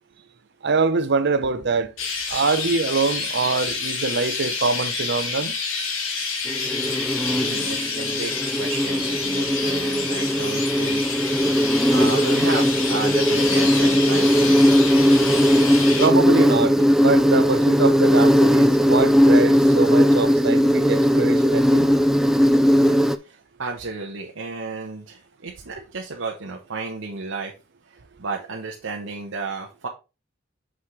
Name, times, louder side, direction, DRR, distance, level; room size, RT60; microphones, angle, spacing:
voice 1, 0.6-1.9 2.3-5.5 16.0-21.9, right 4 dB, 60° right, 0.8 m, -24 dB
Chirp tweet, 2.0-16.1, left 4 dB, 90° left, 1.8 m, -28 dB
Insect, 6.5-23.2, equal, 5° right, 0.3 m, -18 dB
voice 2, 7.3-11.0 11.9-14.6 22.8-27.5 27.9-29.9, right 4 dB, 80° right, 1.0 m, -33 dB
6.3 x 5.9 x 3.2 m
head